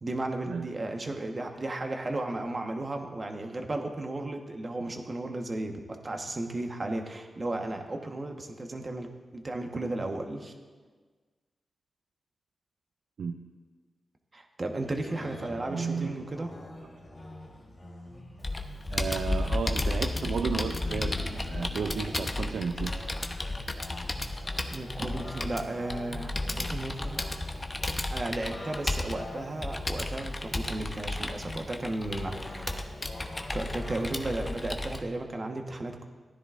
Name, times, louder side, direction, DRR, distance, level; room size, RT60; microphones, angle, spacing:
voice 1, 0.0-9.1 9.3-10.5 14.3-16.5 24.7-27.2 28.1-32.9 33.5-36.0, right 2 dB, 40° right, 4 dB, 1.2 m, -34 dB
sound 1, 14.8-34.0, left 2 dB, 50° left, 2.4 m, -45 dB
voice 2, 15.7-16.2 18.9-22.9, right 6 dB, 80° right, 5 dB, 0.4 m, -33 dB
Computer keyboard, 18.4-35.0, left 2 dB, 30° left, 0.9 m, -33 dB
15.0 x 10.5 x 2.5 m, 1.4 s
cardioid pair, 55°, 0 cm